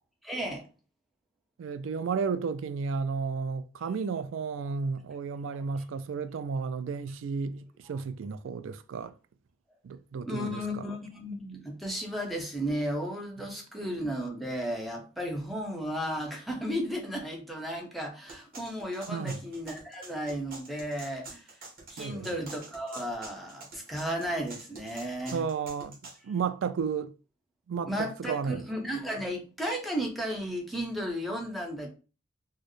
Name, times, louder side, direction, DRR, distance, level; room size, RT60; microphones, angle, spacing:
voice 1, 0.2-0.7 10.3-21.5 21.9-25.4 27.9-31.9, equal, ahead, 0.8 m, -34 dB
voice 2, 1.6-9.1 9.8-10.8 19.1-19.4 22.0-22.3 25.3-26.0 26.2-27.1 27.7-28.6, right 5 dB, 75° right, 0.3 m, -33 dB
sound 1, 18.3-26.2, right 3 dB, 50° right, 1.5 m, -46 dB
4.3 x 2.1 x 3.1 m
head